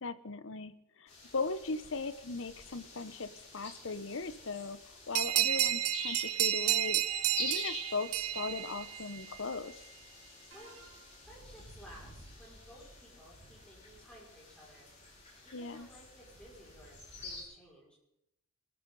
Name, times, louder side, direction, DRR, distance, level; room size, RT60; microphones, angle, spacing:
voice 1, 0.0-9.7 15.5-15.9, left 4 dB, 60° left, 14 dB, 0.8 m, -39 dB
sound 1, 1.1-17.4, left 3 dB, 30° left, 5.3 m, -47 dB
sound 2, 5.1-9.4, right 13 dB, 90° right, 0.5 m, -31 dB
voice 2, 10.5-10.9 11.2-14.9 15.4-17.9, equal, 5° left, -5 dB, 5.9 m, -56 dB
sound 3, 10.5-11.5, right 4 dB, 65° right, 3.4 m, -58 dB
23.0 x 13.5 x 4.0 m, 0.81 s
head